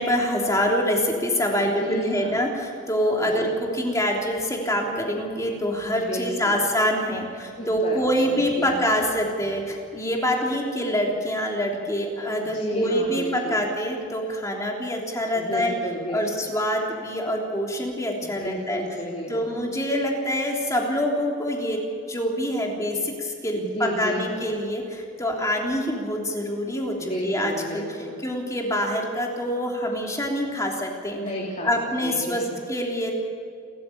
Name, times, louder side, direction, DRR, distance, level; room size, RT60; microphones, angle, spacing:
voice 1, 0.0-15.7 16.1-18.8 19.3-21.8 22.1-27.8 28.2-31.2 31.6-32.4 32.7-33.1, equal, 15° left, -1 dB, 3.3 m, -25 dB
voice 2, 1.6-2.3 3.2-3.6 6.0-6.6 7.6-8.8 12.5-13.6 15.3-16.2 18.4-19.5 23.5-24.4 27.0-28.1 31.2-31.7 32.0-32.6, equal, 35° left, -4 dB, 3.1 m, -32 dB
29.5 x 14.0 x 7.0 m, 2.4 s
head